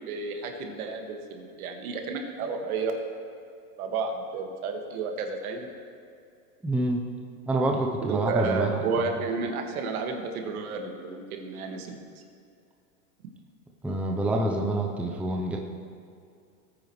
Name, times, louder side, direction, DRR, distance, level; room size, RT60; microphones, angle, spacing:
voice 1, 0.1-2.9 3.8-5.7 8.0-12.0, right 4 dB, 70° right, 3 dB, 1.9 m, -31 dB
voice 2, 6.6-7.0 7.5-8.8 13.8-15.6, right 1 dB, 5° right, 0 dB, 0.7 m, -27 dB
19.0 x 9.1 x 3.2 m, 2.4 s
supercardioid pair, 130°, 45 cm